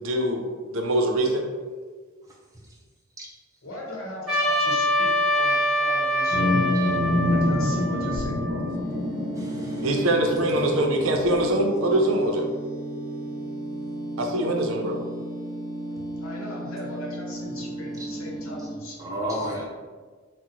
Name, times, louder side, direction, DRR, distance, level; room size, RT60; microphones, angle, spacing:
voice 1, 0.0-1.5 9.8-12.5 14.2-15.0, right 1 dB, 75° right, 2 dB, 0.5 m, -23 dB
voice 2, 3.6-6.6 7.3-8.7 15.8-19.1 19.4-19.6, left 1 dB, 80° left, -3 dB, 0.9 m, -39 dB
Trumpet, 4.3-8.7, equal, ahead, 1.4 m, -25 dB
sound 1, 6.3-12.1, left 1 dB, 55° left, 1.4 m, -27 dB
sound 2, 8.7-18.8, right 1 dB, 25° left, 0.6 m, -34 dB
voice 3, 9.4-9.9 19.0-19.6, equal, 15° right, -4 dB, 0.6 m, -31 dB
2.9 x 2.0 x 3.8 m, 1.5 s
head